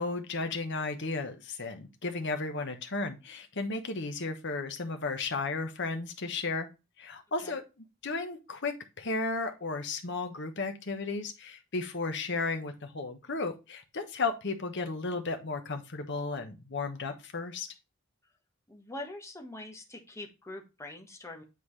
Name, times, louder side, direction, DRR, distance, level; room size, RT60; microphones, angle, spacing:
voice 1, 0.0-6.7 7.0-17.7, left 3 dB, 55° left, 7 dB, 1.1 m, -34 dB
voice 2, 18.7-21.4, left 1 dB, 15° left, 3 dB, 1.2 m, -43 dB
9.3 x 3.9 x 3.2 m, 0.27 s
head